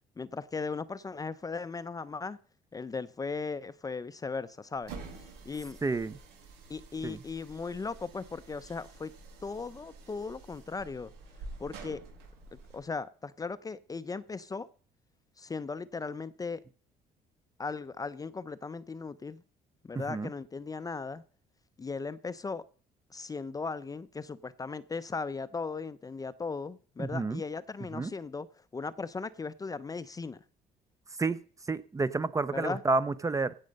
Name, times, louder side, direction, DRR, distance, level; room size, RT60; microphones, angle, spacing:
voice 1, 0.2-2.4 2.7-4.9 5.4-5.8 6.7-9.1 9.4-11.1 11.6-12.0 12.5-14.7 15.4-16.6 17.6-19.4 19.8-21.2 21.8-22.6 23.1-28.5 28.7-30.4 32.5-32.8, left 4 dB, 20° left, 15 dB, 0.6 m, -37 dB
sound 1, 4.7-12.8, right 3 dB, 90° right, 6.7 m, -49 dB
voice 2, 5.8-6.1 7.0-7.2 20.1-20.3 27.0-27.4 27.9-28.1 31.2-31.4 31.7-33.5, right 3 dB, 20° right, 15 dB, 0.6 m, -30 dB
16.5 x 6.4 x 5.3 m, 0.42 s
cardioid pair, 110°, 17 cm